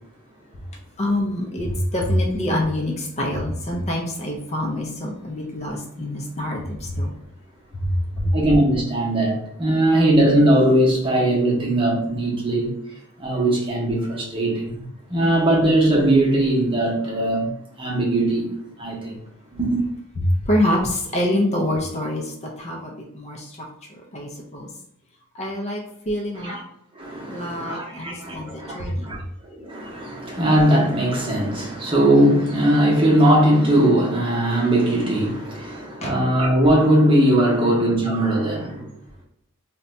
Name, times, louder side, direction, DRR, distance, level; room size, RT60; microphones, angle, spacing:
voice 1, 1.0-7.2 7.7-7.9 8.2-8.3 20.2-23.6 23.9-24.7 25.3-26.6 27.3-29.1 36.0-36.1, left 1 dB, 30° left, -1 dB, 0.5 m, -25 dB
voice 2, 8.3-12.7 13.2-14.8 15.1-17.5 17.8-19.2 19.5-19.8 26.3-26.6 26.9-29.2 29.4-38.8, right 1 dB, 25° right, -4 dB, 0.8 m, -19 dB
2.6 x 2.2 x 3.9 m, 0.71 s
head